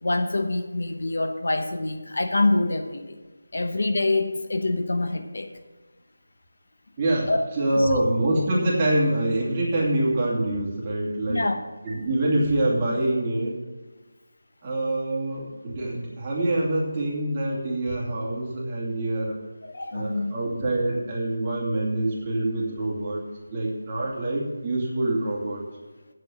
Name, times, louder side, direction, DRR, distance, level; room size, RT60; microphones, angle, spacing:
voice 1, 0.0-3.1 3.5-5.5 7.3-7.4 7.8-8.0 11.3-11.6 19.7-20.3, left 2 dB, 65° left, 7 dB, 1.1 m, -25 dB
voice 2, 7.0-11.5 11.8-13.6 14.6-19.4 19.9-23.2 23.5-25.6, right 1 dB, 20° right, -6 dB, 2.5 m, -25 dB
8.4 x 7.0 x 7.4 m, 1.2 s
figure-of-eight pair, 170°, 0 cm